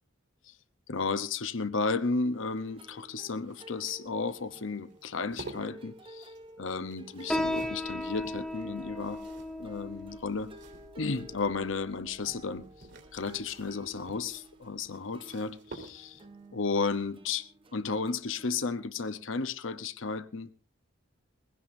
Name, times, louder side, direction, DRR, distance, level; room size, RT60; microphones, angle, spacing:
voice 1, 0.9-6.3 6.6-9.2 9.6-10.5 11.0-12.6 13.1-16.2 16.5-20.5, left 4 dB, 75° left, 0.9 m, -33 dB
sound 1, 2.3-18.7, right 1 dB, 25° right, 0.8 m, -53 dB
sound 2, 2.5-11.3 12.5-16.4 18.0-18.3 18.6-18.7, right 2 dB, 60° right, 3.2 m, -51 dB
Piano, 7.3-14.4, left 1 dB, 5° left, 1.1 m, -38 dB
21.5 x 16.5 x 2.6 m
head